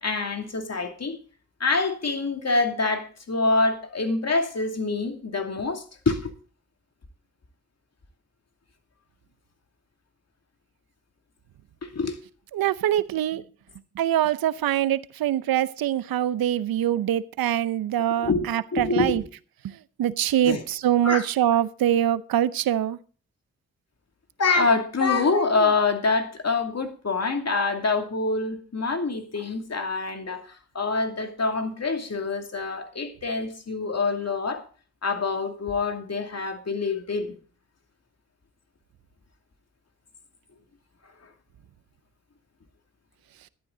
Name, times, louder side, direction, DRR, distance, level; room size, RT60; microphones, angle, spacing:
voice 1, 0.0-1.2 1.6-6.3 11.8-12.2 18.1-19.2 20.4-20.6 21.0-21.2 24.4-30.4 30.7-34.6 35.0-37.4, left 3 dB, 45° left, 2.6 m, -26 dB
voice 2, 12.5-13.4 14.0-19.2 20.0-23.0, right 11 dB, 80° right, 0.7 m, -24 dB
13.0 x 11.0 x 3.9 m
supercardioid pair, 50°, 35 cm